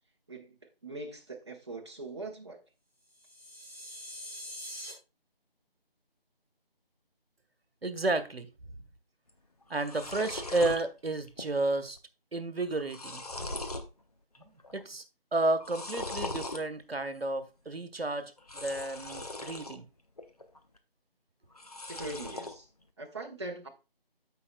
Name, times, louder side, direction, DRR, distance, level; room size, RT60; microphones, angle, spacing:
voice 1, 0.3-2.6 21.9-22.7 23.0-23.7, right 2 dB, 30° right, 1.2 m, -41 dB
sound 1, 3.1-4.9, equal, 15° left, 2.7 m, -44 dB
voice 2, 7.8-8.5 9.7-12.0 12.3-13.2 14.7-15.0 15.3-19.9, right 2 dB, 80° right, 1.3 m, -32 dB
sound 2, 9.3-9.4 9.6-10.8 11.3-11.7 11.9-12.0 12.6-13.9 14.3-14.8 15.5-16.6 18.4-19.8 20.2-20.8 21.5-22.6, left 2 dB, 40° left, 0.8 m, -40 dB
14.5 x 5.5 x 2.2 m
figure-of-eight pair, 170°, 30 cm